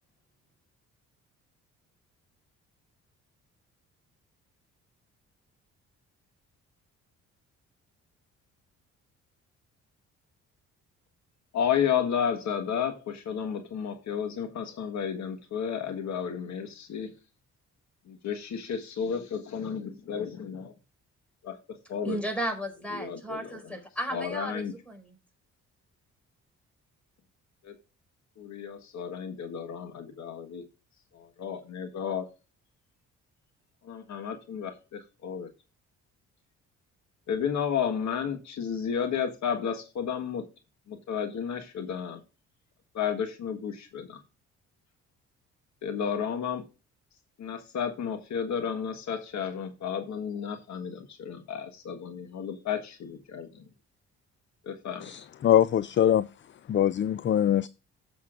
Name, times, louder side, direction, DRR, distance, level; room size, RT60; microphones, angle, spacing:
voice 1, 11.5-17.1 18.1-20.7 21.4-22.2 22.9-23.8 24.1-24.7 27.6-27.7 28.4-30.6 31.1-32.3 33.8-35.5 37.3-40.5 40.9-42.2 42.9-44.2 45.8-46.6 47.4-53.7 54.6-55.1, left 7 dB, 70° left, 1.5 m, -32 dB
voice 2, 22.0-25.1, right 1 dB, 5° left, 4.9 m, -34 dB
voice 3, 55.0-56.3 56.7-57.7, left 10 dB, 40° left, 0.4 m, -23 dB
15.0 x 7.0 x 2.5 m
cardioid pair, 90°, 30 cm